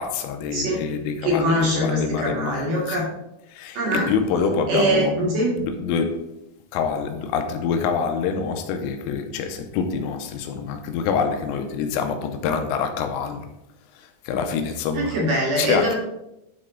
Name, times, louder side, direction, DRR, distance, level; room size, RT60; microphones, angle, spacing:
voice 1, 0.0-3.0 3.5-5.2 5.6-6.3 6.7-13.5 14.0-15.2 15.6-16.0, left 6 dB, 85° left, 3.3 m, -26 dB
voice 2, 1.2-3.0 3.7-4.1 4.7-5.5 14.9-16.0, right 1 dB, 50° right, 3.0 m, -22 dB
11.5 x 4.2 x 3.8 m
omnidirectional pair, 5.7 m